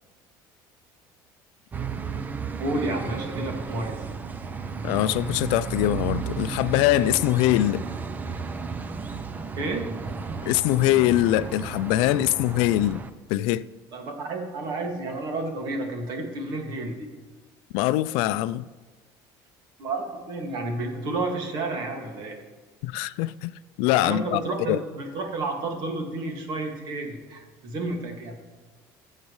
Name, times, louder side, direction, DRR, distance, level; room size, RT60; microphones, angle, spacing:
sound 1, 1.7-13.1, right 5 dB, 20° right, 0.5 m, -33 dB
voice 1, 2.6-4.0 9.6-9.9 13.9-17.1 19.8-22.4 24.0-28.3, right 2 dB, 55° right, 2.0 m, -31 dB
voice 2, 4.8-7.8 10.4-13.0 13.3-13.6 17.7-18.7 22.8-23.5 23.8-24.4 24.7-24.8, left 15 dB, 80° left, 0.4 m, -23 dB
20.5 x 7.4 x 3.2 m
cardioid pair, 145°, 9 cm